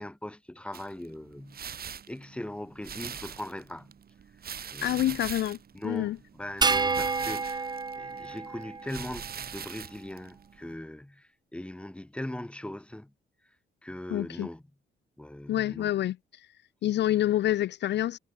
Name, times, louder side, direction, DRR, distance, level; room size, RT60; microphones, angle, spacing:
voice 1, 0.0-1.6 2.1-3.9 4.7-5.2 5.7-13.1 13.8-14.6 15.2-15.9, left 1 dB, 5° left, 1.8 m, -40 dB
sound 1, 0.7-10.7, right 7 dB, 50° right, 2.8 m, -43 dB
voice 2, 4.8-5.6 5.8-6.2 14.1-14.5 15.5-16.5 16.8-18.2, left 13 dB, 60° left, 0.5 m, -27 dB
sound 2, 6.6-9.2, right 4 dB, 20° right, 0.7 m, -29 dB
cardioid pair, 90°, 20 cm